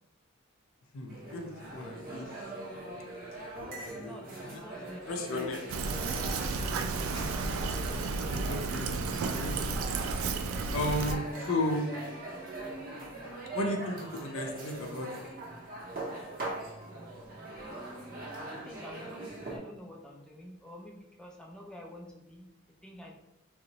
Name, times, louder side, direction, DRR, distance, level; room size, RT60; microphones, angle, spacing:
voice 1, 0.9-2.3 3.6-5.6 7.1-9.0 9.3-9.8 10.7-11.9 13.5-15.3, left 1 dB, 70° left, 2 dB, 0.5 m, -35 dB
sound 1, 1.1-19.6, right 2 dB, 45° right, 0.6 m, -41 dB
voice 2, 3.6-5.6 17.6-22.5 22.8-23.1, left 1 dB, 5° left, -1 dB, 0.3 m, -49 dB
Fill (with liquid), 5.7-11.2, right 4 dB, 85° right, 0.3 m, -32 dB
3.7 x 2.0 x 2.7 m, 0.88 s
head